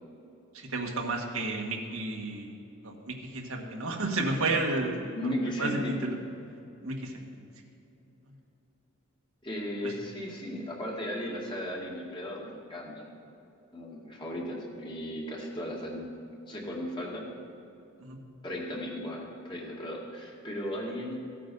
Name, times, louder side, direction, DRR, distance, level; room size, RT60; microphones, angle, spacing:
voice 1, 0.5-2.5 2.8-6.2 6.8-7.3 9.8-9.9 18.0-18.2, right 2 dB, 85° right, 1 dB, 1.7 m, -32 dB
voice 2, 5.0-6.0 9.4-13.1 13.7-16.1 16.5-17.3 18.4-21.2, equal, 25° left, -2 dB, 2.1 m, -36 dB
16.0 x 8.5 x 5.5 m, 2.8 s
head